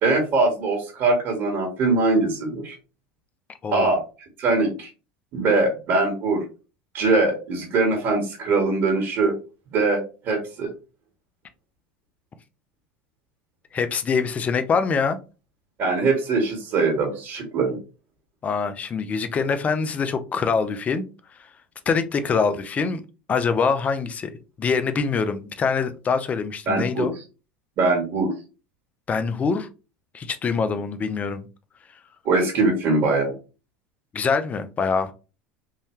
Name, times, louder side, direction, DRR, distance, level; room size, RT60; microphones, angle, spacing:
voice 1, 0.0-2.7 3.7-4.0 4.4-4.9 5.3-6.4 6.9-9.3 9.7-10.7 15.8-17.8 26.7-27.1 27.8-28.3 32.2-33.3, right 3 dB, 50° right, 1.7 m, -22 dB
voice 2, 13.7-15.2 18.4-21.0 21.9-23.0 23.3-24.3 24.6-27.1 29.1-29.7 30.1-31.5 34.1-35.1, left 5 dB, 30° left, 0.6 m, -24 dB
3.8 x 2.7 x 3.1 m
supercardioid pair, 100°, 5 cm